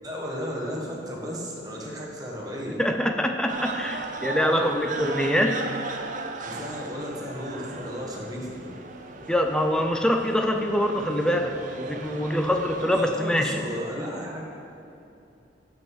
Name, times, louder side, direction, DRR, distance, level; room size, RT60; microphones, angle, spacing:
voice 1, 0.0-2.8 6.4-8.8 13.0-14.4, equal, 20° right, -3 dB, 1.5 m, -34 dB
voice 2, 2.8-5.6 9.3-13.6, equal, 5° left, 4 dB, 0.5 m, -24 dB
sound 1, 3.5-13.0, right 3 dB, 45° right, 0.7 m, -37 dB
7.4 x 6.2 x 7.4 m, 2.7 s
head